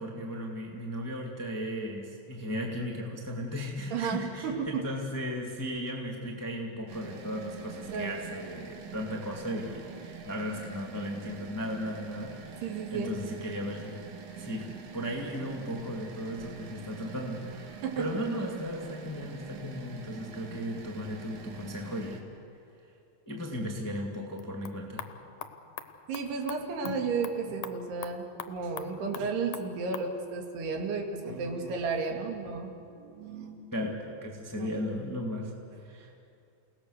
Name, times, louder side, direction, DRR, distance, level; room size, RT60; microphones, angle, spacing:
voice 1, 0.0-12.6 12.9-14.0 14.4-22.2 23.2-25.1 33.7-36.2, equal, 10° left, -1 dB, 1.0 m, -36 dB
voice 2, 3.9-4.8 7.9-8.2 12.6-13.1 17.8-18.1 26.1-33.6, right 5 dB, 70° right, 2 dB, 4.0 m, -33 dB
sound 1, 6.9-22.2, right 5 dB, 55° right, 2.7 m, -45 dB
sound 2, 24.3-30.1, left 10 dB, 75° left, 1.9 m, -45 dB
29.5 x 18.0 x 6.7 m, 2.5 s
omnidirectional pair, 5.0 m